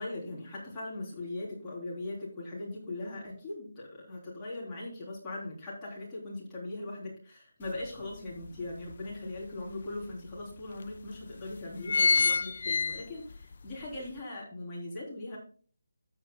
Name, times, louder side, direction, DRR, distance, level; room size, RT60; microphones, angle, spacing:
voice 1, 0.0-15.4, left 2 dB, 10° left, -6 dB, 3.4 m, -40 dB
sound 1, 7.6-7.7 8.2-9.4 10.0-10.1 10.4-10.5 11.1-11.3 11.6-13.4 13.8-13.9, left 4 dB, 50° left, 0.5 m, -27 dB
14.0 x 8.1 x 2.2 m, 0.41 s
hypercardioid pair, 170°, 0 cm